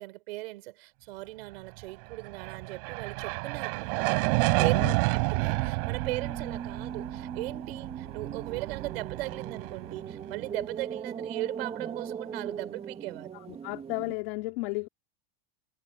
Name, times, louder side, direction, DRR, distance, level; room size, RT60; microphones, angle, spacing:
voice 1, 0.0-3.9 4.6-4.7 5.1-13.3, right 20 dB, 80° right, 4.8 m, -38 dB
sound 1, 2.1-10.5, right 29 dB, 65° right, 5.3 m, -30 dB
sound 2, 3.7-14.1, right 7 dB, 20° right, 3.3 m, -40 dB
voice 2, 4.6-4.9 13.3-14.9, left 22 dB, 65° left, 3.2 m, -34 dB
supercardioid pair, 155°, 30 cm